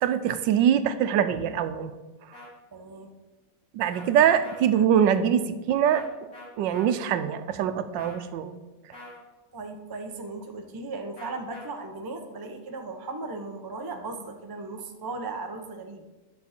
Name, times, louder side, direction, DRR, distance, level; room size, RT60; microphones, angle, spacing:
voice 1, 0.0-1.9 3.7-6.1 6.6-8.6, right 9 dB, 90° right, 11 dB, 1.3 m, -23 dB
sound 1, 2.3-2.5 3.9-4.1 4.4-4.6 5.9-6.1 6.3-6.9 8.0-8.3 8.9-9.2 11.2-11.6, left 2 dB, 55° left, 2.4 m, -44 dB
voice 2, 2.7-3.1 9.5-16.1, right 3 dB, 35° right, 3 dB, 0.3 m, -37 dB
10.5 x 6.4 x 4.3 m, 1.1 s
omnidirectional pair, 1.9 m